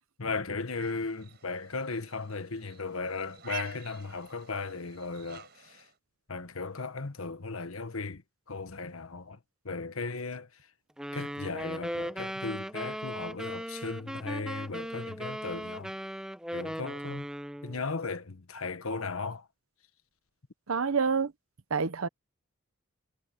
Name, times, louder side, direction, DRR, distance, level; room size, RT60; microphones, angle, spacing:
voice 1, 0.2-5.9 6.3-8.2 8.5-9.4 9.6-10.5 11.1-15.9 16.5-17.3 17.6-19.5, left 4 dB, 85° left, 1.4 m, -36 dB
sound 1, 0.7-6.0, right 9 dB, 50° right, 5.3 m, -49 dB
sound 2, 11.0-17.8, equal, 5° right, 1.1 m, -38 dB
voice 2, 20.7-21.3 21.7-22.1, right 5 dB, 80° right, 0.8 m, -27 dB
head